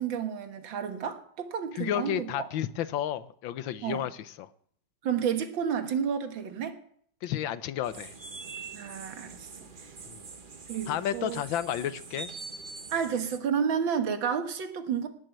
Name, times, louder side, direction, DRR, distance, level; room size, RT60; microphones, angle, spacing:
voice 1, 0.0-2.5 3.8-4.0 5.0-6.8 8.7-9.5 10.7-11.4 12.9-15.1, right 7 dB, 85° right, 2.2 m, -31 dB
voice 2, 1.7-4.5 7.2-8.1 10.1-10.2 10.9-12.3, left 11 dB, 90° left, 1.5 m, -32 dB
sound 1, 7.8-13.4, right 4 dB, 35° right, 1.0 m, -44 dB
18.5 x 6.5 x 8.9 m
omnidirectional pair, 2.0 m